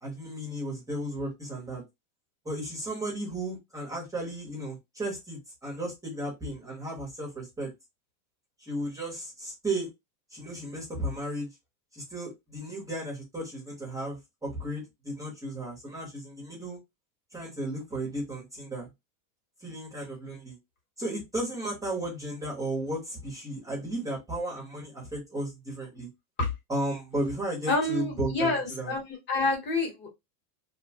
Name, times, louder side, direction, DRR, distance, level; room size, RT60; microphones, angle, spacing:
voice 1, 0.0-1.8 2.4-7.7 8.6-9.9 10.3-11.5 11.9-16.8 17.3-18.9 19.6-20.6 21.0-26.1 26.7-28.9, right 1 dB, 5° right, 0.8 m, -34 dB
voice 2, 27.7-29.0 29.3-30.1, left 2 dB, 25° left, 1.0 m, -28 dB
2.8 x 2.2 x 2.7 m
supercardioid pair, 165°, 46 cm